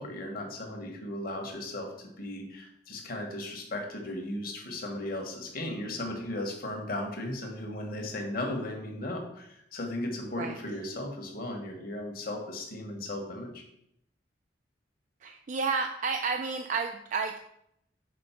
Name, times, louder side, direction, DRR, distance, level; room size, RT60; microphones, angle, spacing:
voice 1, 0.0-1.9 2.2-13.6, left 1 dB, 55° left, 2 dB, 1.3 m, -36 dB
voice 2, 15.2-17.4, right 4 dB, 45° right, 5 dB, 0.4 m, -31 dB
5.2 x 3.8 x 5.7 m, 0.75 s
head